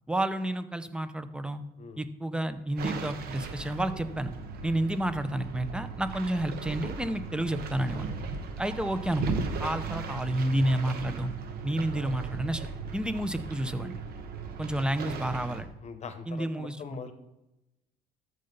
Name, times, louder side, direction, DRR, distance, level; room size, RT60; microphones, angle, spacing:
voice 1, 0.1-1.6 2.0-4.3 4.6-8.1 8.6-11.3 11.6-12.7 12.9-14.0 14.6-15.7 16.3-17.0, right 1 dB, 5° right, 11 dB, 0.6 m, -30 dB
sound 1, 2.8-15.6, right 5 dB, 65° right, 1.2 m, -37 dB
voice 2, 15.8-17.1, left 5 dB, 40° left, 10 dB, 1.0 m, -42 dB
13.5 x 5.4 x 3.9 m, 0.94 s
cardioid pair, 110°, 17 cm